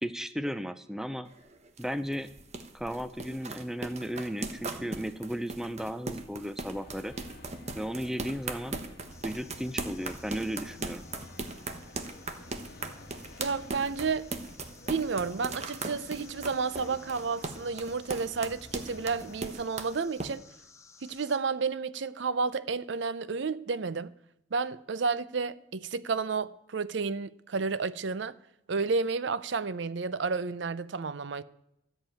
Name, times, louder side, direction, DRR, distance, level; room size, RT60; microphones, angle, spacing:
voice 1, 0.0-1.3 1.8-2.3 2.7-7.1 7.7-8.8 9.2-11.0, equal, ahead, 0.5 m, -35 dB
sound 1, 1.3-20.3, right 3 dB, 35° right, 1.1 m, -38 dB
sound 2, 6.6-19.5, left 1 dB, 50° left, 1.3 m, -51 dB
sound 3, 9.1-21.4, left 4 dB, 15° left, 0.9 m, -57 dB
voice 2, 13.4-14.3 14.9-20.4 21.0-24.1 24.5-28.3 28.7-31.4, right 4 dB, 60° right, 0.5 m, -31 dB
13.5 x 6.6 x 9.1 m
head